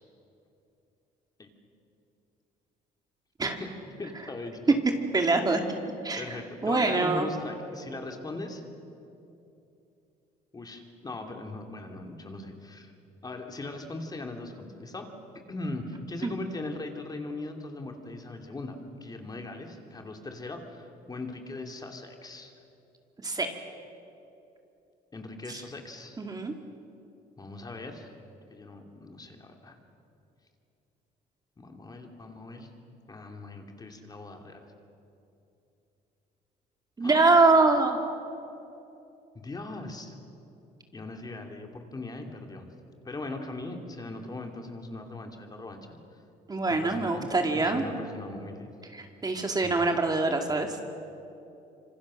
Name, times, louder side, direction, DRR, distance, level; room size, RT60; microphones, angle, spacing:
voice 1, 4.0-4.6 6.2-8.6 10.5-12.9 13.2-15.1 15.5-22.5 25.1-26.2 27.4-28.1 28.5-29.7 31.6-32.7 33.1-34.6 37.0-37.2 39.3-40.1 40.9-42.7 43.0-45.9 46.7-47.3 47.5-48.7 49.6-49.9, left 2 dB, 25° left, 3 dB, 2.9 m, -39 dB
voice 2, 5.1-5.6 6.0-7.3 16.2-16.3 23.2-23.5 26.2-26.5 37.0-38.0 46.5-47.8 48.9-50.8, right 3 dB, 25° right, 4 dB, 2.2 m, -24 dB
26.5 x 25.5 x 6.5 m, 2.8 s
cardioid pair, 110°, 17 cm